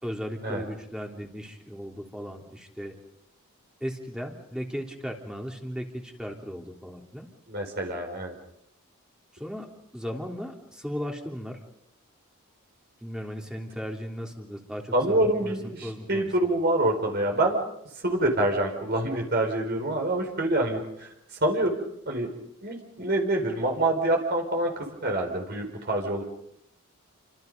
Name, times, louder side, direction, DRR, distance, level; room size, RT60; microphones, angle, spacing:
voice 1, 0.0-2.9 3.8-7.3 9.3-11.6 13.0-16.3, equal, 5° right, 1 dB, 3.4 m, -36 dB
voice 2, 7.5-8.3 14.9-17.6 18.0-21.1 21.4-21.8 22.1-22.3 22.6-24.7 25.0-26.2, right 1 dB, 45° right, 2 dB, 4.6 m, -26 dB
30.0 x 26.0 x 5.4 m, 0.79 s
head